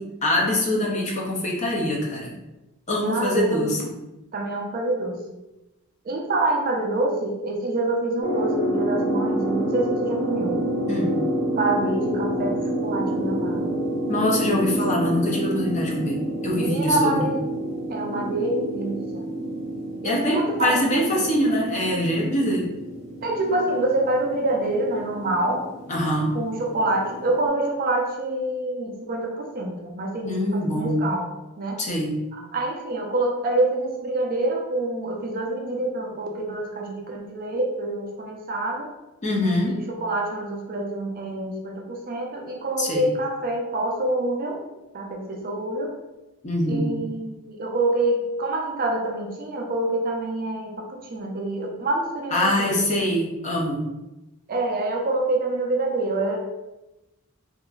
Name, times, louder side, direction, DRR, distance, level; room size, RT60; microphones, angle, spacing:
voice 1, 0.0-2.3 2.9-3.8 10.9-11.2 14.1-17.3 20.0-22.7 25.9-26.3 30.2-31.1 31.8-32.2 39.2-39.8 42.8-43.0 46.4-47.0 52.3-53.8, left 1 dB, 30° left, -1 dB, 0.5 m, -24 dB
voice 2, 3.0-3.7 4.3-5.2 6.0-10.6 11.6-12.6 12.8-13.6 16.5-17.5 17.9-19.3 20.0-21.2 23.2-25.7 26.3-31.3 31.6-31.8 32.5-38.9 39.7-44.6 44.9-45.9 46.7-52.8 54.5-56.4, right 2 dB, 40° right, 1 dB, 0.4 m, -26 dB
sound 1, 8.2-27.5, right 1 dB, 60° left, 0.8 m, -28 dB
2.8 x 2.5 x 2.3 m, 1.0 s
head